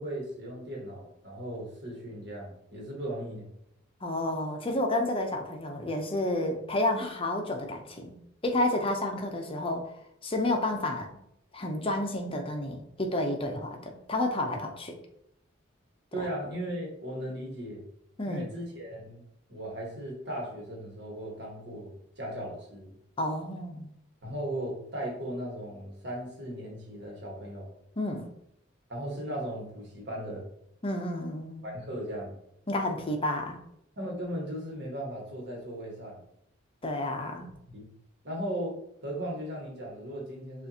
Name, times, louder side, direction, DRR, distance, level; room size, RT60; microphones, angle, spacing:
voice 1, 0.0-3.5 16.1-17.8 18.3-19.2 19.5-22.9 24.2-27.7 28.9-30.5 31.6-32.4 34.0-36.2 37.7-37.9 38.2-38.7 39.0-40.7, right 1 dB, 60° right, -2 dB, 1.4 m, -37 dB
voice 2, 4.0-8.1 8.4-9.9 10.2-11.1 11.5-15.0 16.2-16.3 18.2-18.5 23.2-23.9 28.0-28.3 30.8-31.6 32.7-33.6 36.8-37.5, left 1 dB, 30° left, 3 dB, 0.6 m, -30 dB
6.7 x 2.5 x 2.8 m, 0.75 s
head